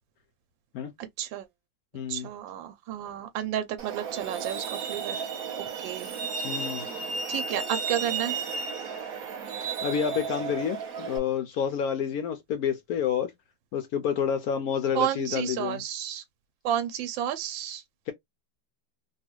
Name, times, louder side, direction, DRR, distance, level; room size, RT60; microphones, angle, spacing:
voice 1, 1.0-1.5 2.1-5.3 5.8-6.1 7.3-8.4 14.9-16.2 16.6-17.8, right 11 dB, 80° right, 1.3 m, -31 dB
voice 2, 1.9-2.3 6.4-6.9 9.8-13.3 13.7-15.8, left 8 dB, 75° left, 0.8 m, -29 dB
Truck, 3.8-11.2, right 5 dB, 55° right, 1.2 m, -33 dB
3.2 x 2.3 x 3.0 m
omnidirectional pair, 2.1 m